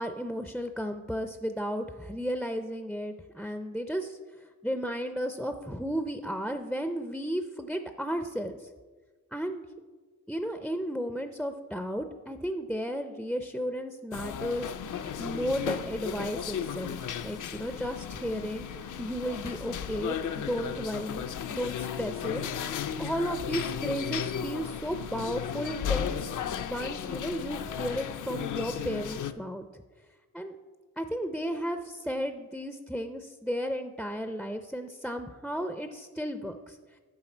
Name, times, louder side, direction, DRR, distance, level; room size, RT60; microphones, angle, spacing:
voice 1, 0.0-8.6 9.3-9.6 10.3-16.9 17.2-21.2 21.5-26.3 26.6-29.8 30.3-30.6 31.0-36.8, equal, ahead, 7 dB, 0.4 m, -34 dB
sound 1, 14.1-29.3, left 8 dB, 70° left, 0.5 m, -35 dB
9.9 x 5.8 x 4.4 m, 1.4 s
cardioid pair, 85°, 32 cm